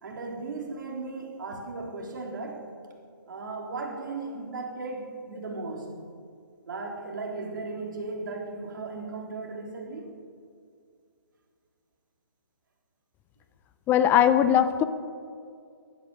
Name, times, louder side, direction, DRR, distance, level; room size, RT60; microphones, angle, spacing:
voice 1, 0.0-2.7 3.3-5.9 6.7-10.1, right 3 dB, 60° right, 0 dB, 3.7 m, -36 dB
voice 2, 13.9-14.8, left 10 dB, 15° left, 11 dB, 0.6 m, -20 dB
15.5 x 11.5 x 6.6 m, 2.3 s
hypercardioid pair, 140°, 12 cm